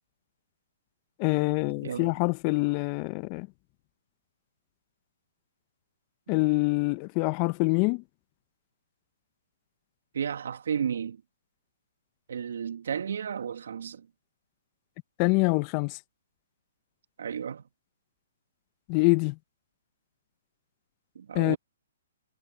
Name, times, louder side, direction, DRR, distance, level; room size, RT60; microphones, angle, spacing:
voice 1, 1.2-3.5 6.3-8.0 15.2-16.0 18.9-19.3 21.3-21.6, left 28 dB, 35° left, 1.1 m, -25 dB
voice 2, 1.8-2.1 10.1-11.2 12.3-14.1 17.2-17.6 21.1-21.6, right 7 dB, 70° right, 2.7 m, -33 dB
hypercardioid pair, 130°, 0 cm